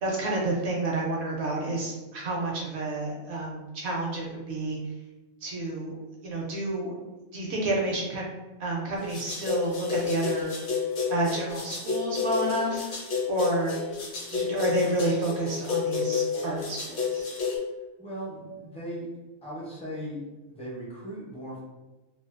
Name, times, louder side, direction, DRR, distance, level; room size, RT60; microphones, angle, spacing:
voice 1, 0.0-4.8 5.4-5.9 6.2-6.9 7.3-8.3 8.6-10.5 11.1-12.8 13.3-13.7 14.3-17.3, right 2 dB, 65° right, -2 dB, 0.7 m, -29 dB
sound 1, 9.0-17.6, left 5 dB, 60° left, 0.9 m, -30 dB
voice 2, 18.0-19.1 19.4-20.2 20.5-21.6, right 1 dB, 10° left, -7 dB, 0.4 m, -38 dB
2.5 x 2.3 x 2.4 m, 1.1 s
omnidirectional pair, 1.4 m